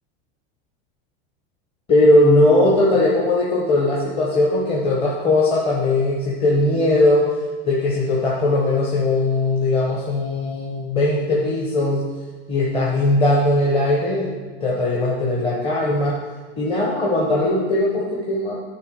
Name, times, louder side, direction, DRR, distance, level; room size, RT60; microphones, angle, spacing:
voice 1, 1.9-7.3 7.6-12.1 12.5-16.2 16.6-18.5, left 2 dB, 15° left, -5 dB, 1.0 m, -19 dB
9.5 x 3.4 x 5.2 m, 1.4 s
supercardioid pair, 145°, 32 cm